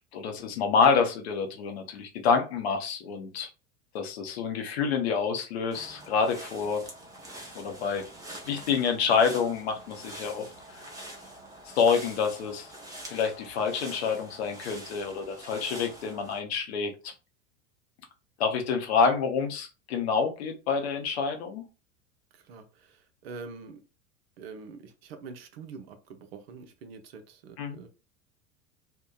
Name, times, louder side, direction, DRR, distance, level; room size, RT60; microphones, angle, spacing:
voice 1, 0.0-3.5 3.9-6.8 7.5-8.0 8.4-10.5 10.7-10.8 11.7-12.7 13.1-17.1 18.4-21.6 27.6-27.8, left 5 dB, 55° left, 0.7 m, -27 dB
sound 1, 5.7-16.4, right 1 dB, 10° right, 0.7 m, -45 dB
voice 2, 22.3-23.8 24.4-27.9, right 4 dB, 55° right, 0.6 m, -45 dB
2.7 x 2.1 x 2.3 m
figure-of-eight pair, 80°, 38 cm